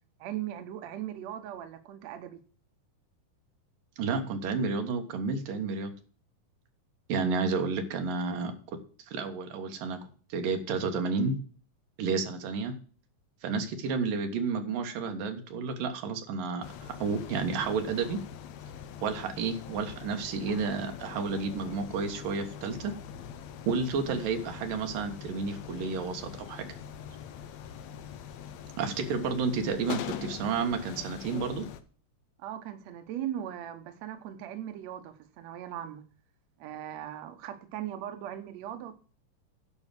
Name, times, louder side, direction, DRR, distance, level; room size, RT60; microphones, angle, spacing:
voice 1, 0.2-2.4 32.4-36.0 36.6-38.9, right 11 dB, 65° right, 8 dB, 2.1 m, -39 dB
voice 2, 4.0-5.9 7.1-8.5 9.1-10.0 10.3-11.4 12.0-12.7 13.4-18.2 19.0-22.9 23.7-26.7 28.8-31.7, right 4 dB, 85° right, 6 dB, 3.2 m, -31 dB
sound 1, 16.6-31.8, left 8 dB, 70° left, 1.9 m, -43 dB
11.0 x 5.6 x 7.6 m, 0.41 s
omnidirectional pair, 3.8 m